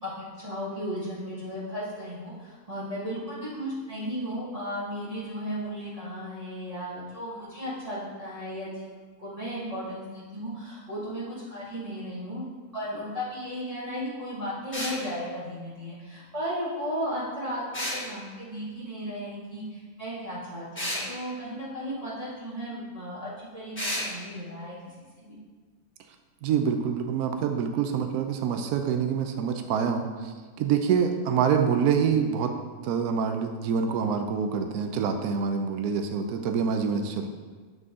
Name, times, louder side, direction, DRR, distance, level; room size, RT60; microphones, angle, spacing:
voice 1, 0.0-25.4, equal, 25° right, -10 dB, 1.3 m, -35 dB
sound 1, 14.7-15.0 17.7-18.0 20.7-21.0 23.7-24.1, left 1 dB, 10° left, 1.2 m, -30 dB
voice 2, 26.4-30.1 30.6-32.5 32.8-37.4, right 7 dB, 85° right, 5 dB, 1.1 m, -26 dB
7.5 x 4.0 x 3.7 m, 1.5 s
omnidirectional pair, 1.6 m